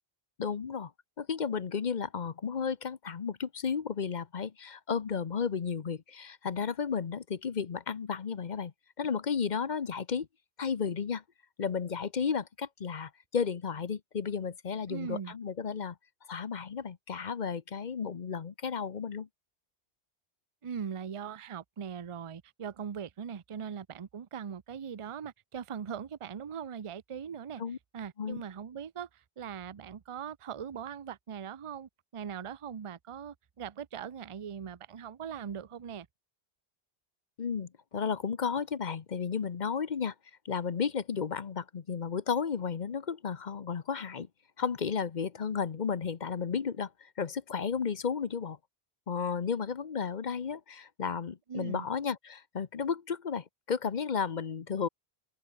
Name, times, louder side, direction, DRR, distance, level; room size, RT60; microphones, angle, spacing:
voice 1, 0.4-0.9 1.2-10.3 10.6-11.2 11.6-16.0 16.3-19.3 27.6-27.8 28.2-28.4 37.4-40.1 40.4-44.3 44.6-48.6 49.1-54.9, left 6 dB, 45° left, 0.9 m, -33 dB
voice 2, 14.9-15.3 20.6-27.6 27.9-36.1 51.5-51.9, right 7 dB, 35° right, 0.6 m, -40 dB
open air
omnidirectional pair, 1.1 m